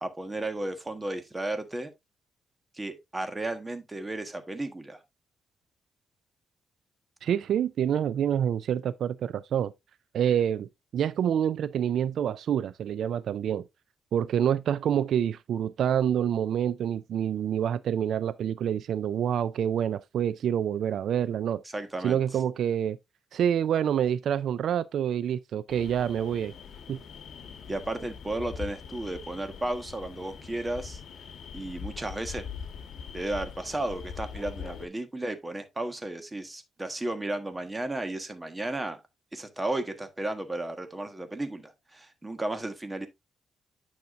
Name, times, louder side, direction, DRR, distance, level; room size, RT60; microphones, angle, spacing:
voice 1, 0.0-1.9 2.7-5.0 21.7-22.2 27.7-31.0 31.5-32.4 33.1-39.0 39.3-43.1, right 2 dB, 15° right, 1.3 m, -34 dB
voice 2, 7.2-9.7 10.1-13.6 14.1-21.6 22.0-23.0 23.3-26.5 26.9-27.0, right 9 dB, 70° right, 0.3 m, -27 dB
sound 1, 25.7-34.9, left 6 dB, 70° left, 1.3 m, -42 dB
9.4 x 5.8 x 2.5 m
cardioid pair, 125°, 0 cm